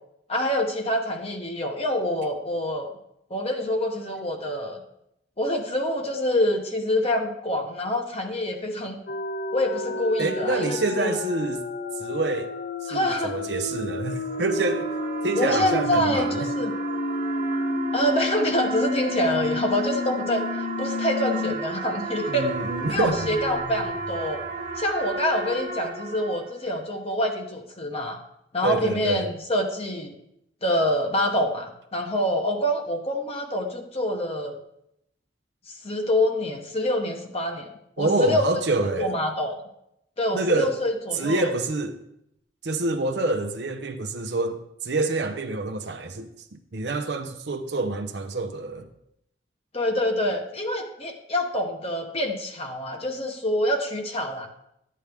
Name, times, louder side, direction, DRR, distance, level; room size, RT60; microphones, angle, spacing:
voice 1, 0.3-2.9 3.3-4.8 5.4-9.0 9.5-11.2 12.9-13.4 15.4-16.7 17.9-22.5 22.9-24.4 24.8-28.2 28.5-30.1 30.6-34.6 35.7-38.5 39.0-39.6 40.2-41.5 49.7-54.5, left 1 dB, 35° left, 1.0 m, -26 dB
sound 1, 9.1-21.5 21.9-22.0 22.4-25.0, left 2 dB, 55° left, 0.5 m, -31 dB
voice 2, 10.2-11.6 12.0-12.5 12.8-14.9 15.2-16.5 22.3-23.1 28.6-29.3 38.0-39.2 40.3-40.8 41.1-42.0 42.6-46.3 46.7-48.9, right 2 dB, 65° right, 0.7 m, -27 dB
sound 2, 14.0-26.7, right 4 dB, 50° right, 1.5 m, -34 dB
11.5 x 8.5 x 3.5 m
head